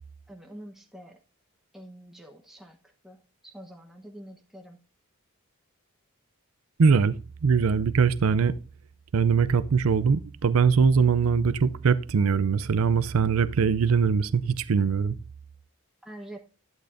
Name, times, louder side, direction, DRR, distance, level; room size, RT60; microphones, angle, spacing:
voice 1, 0.3-1.2 1.7-2.8 3.0-4.8 16.0-16.5, right 1 dB, ahead, 1.0 m, -46 dB
voice 2, 6.8-7.2 7.4-8.5 9.1-15.2, right 5 dB, 70° right, 0.5 m, -22 dB
11.5 x 9.0 x 2.6 m
head